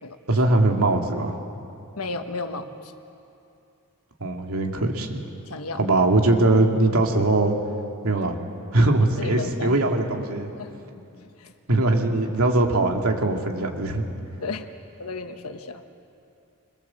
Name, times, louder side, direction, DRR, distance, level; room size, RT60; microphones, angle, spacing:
voice 1, 0.3-1.3 4.2-5.2 5.7-7.5 8.0-8.4 8.7-10.5 11.7-14.0, right 2 dB, 80° right, 2 dB, 2.5 m, -21 dB
voice 2, 1.9-2.9 5.5-5.8 9.2-9.8 10.6-11.5 14.4-14.7 15.0-15.9, left 3 dB, 85° left, 7 dB, 1.4 m, -34 dB
25.0 x 22.0 x 7.7 m, 2.7 s
head